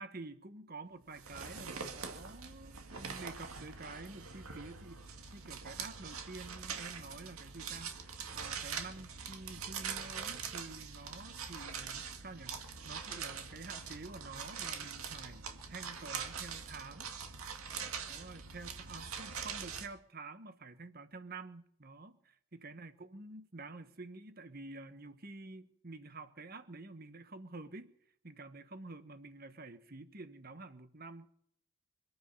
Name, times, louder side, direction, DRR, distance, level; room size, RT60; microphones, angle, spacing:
voice 1, 0.0-17.1 18.1-27.9 28.2-31.3, right 3 dB, 45° right, 11 dB, 1.2 m, -49 dB
sound 1, 1.1-19.9, right 6 dB, 80° right, 2.1 m, -43 dB
24.5 x 9.3 x 5.6 m, 0.70 s
head